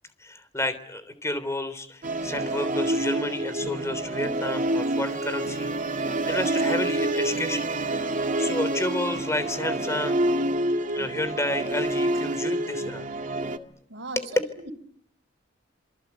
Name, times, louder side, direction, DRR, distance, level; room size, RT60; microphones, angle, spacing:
voice 1, 0.2-5.9 6.3-7.6 8.4-10.2 10.9-13.1 14.1-14.3, left 1 dB, 15° left, 12 dB, 3.4 m, -31 dB
Musical instrument, 2.0-13.6, right 1 dB, 45° right, 2.0 m, -27 dB
voice 2, 13.9-14.7, right 2 dB, 65° right, 9 dB, 4.1 m, -38 dB
27.5 x 24.0 x 8.3 m, 0.65 s
head